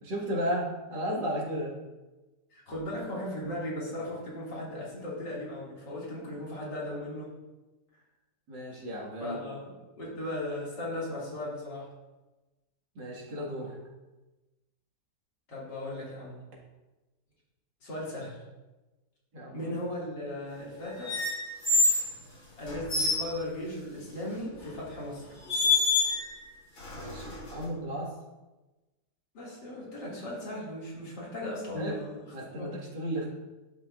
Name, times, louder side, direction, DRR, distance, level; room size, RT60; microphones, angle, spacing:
voice 1, 0.0-1.7 8.5-9.5 13.0-13.8 19.3-19.8 26.9-28.1 31.7-32.0 32.3-33.3, equal, 90° right, -4 dB, 2.6 m, -34 dB
voice 2, 2.5-7.3 9.2-11.9 15.5-16.4 17.8-18.4 19.5-21.2 22.6-25.3 29.3-32.3 32.6-32.7, left 1 dB, 80° left, -6 dB, 3.1 m, -37 dB
sound 1, 21.0-22.1 22.7-23.2 24.6-24.8 25.5-26.3 26.8-27.6, left 3 dB, 65° left, 3.0 m, -27 dB
11.5 x 6.3 x 2.5 m, 1.1 s
omnidirectional pair, 1.9 m